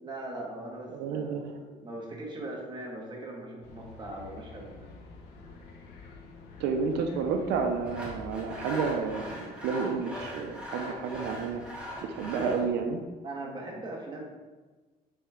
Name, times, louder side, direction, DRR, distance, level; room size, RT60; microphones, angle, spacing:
voice 1, 0.0-5.0 12.3-12.5 13.2-14.2, right 2 dB, 25° right, -2 dB, 1.9 m, -40 dB
voice 2, 0.9-1.5 6.6-11.6 12.0-13.0, right 5 dB, 85° right, 4 dB, 0.6 m, -30 dB
sound 1, 3.6-9.0, left 4 dB, 85° left, 1.1 m, -49 dB
Sawing, 7.8-12.7, equal, 5° right, 2.1 m, -40 dB
8.7 x 4.3 x 3.7 m, 1.3 s
cardioid pair, 110°, 17 cm